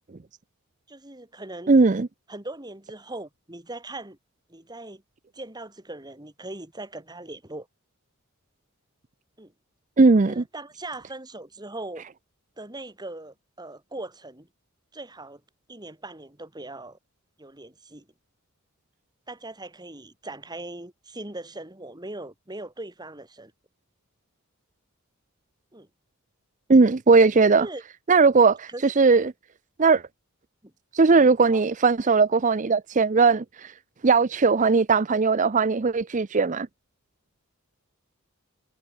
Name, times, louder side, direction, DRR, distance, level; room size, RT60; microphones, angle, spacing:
voice 1, 0.9-1.7 2.3-4.2 4.5-5.0 5.3-7.7 9.4-9.5 10.3-12.0 12.6-14.5 14.9-15.4 15.7-17.0 17.4-18.1 19.3-23.5 25.7-25.9 27.6-27.8 28.4-28.9 30.6-30.7 31.2-31.6, right 2 dB, 20° right, 2.8 m, -40 dB
voice 2, 1.7-2.1 10.0-10.4 26.7-27.7 28.1-29.3 29.8-30.0 30.9-33.7 34.0-36.7, right 4 dB, 35° right, 0.5 m, -19 dB
head